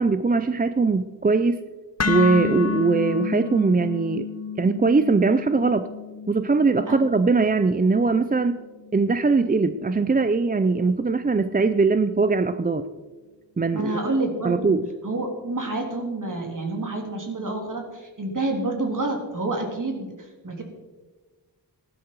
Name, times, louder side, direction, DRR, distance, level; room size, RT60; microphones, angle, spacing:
voice 1, 0.0-1.6 2.1-4.3 4.6-5.9 6.3-8.6 8.9-12.9 13.6-14.0 14.4-14.9, right 4 dB, 20° right, 11 dB, 0.4 m, -21 dB
sound 1, 2.0-10.1, left 6 dB, 35° left, 0.9 m, -32 dB
voice 2, 13.7-14.7 15.0-20.1 20.4-20.6, right 2 dB, 45° right, 2 dB, 3.3 m, -28 dB
16.0 x 12.0 x 4.7 m, 1.3 s
wide cardioid pair, 110°, 43 cm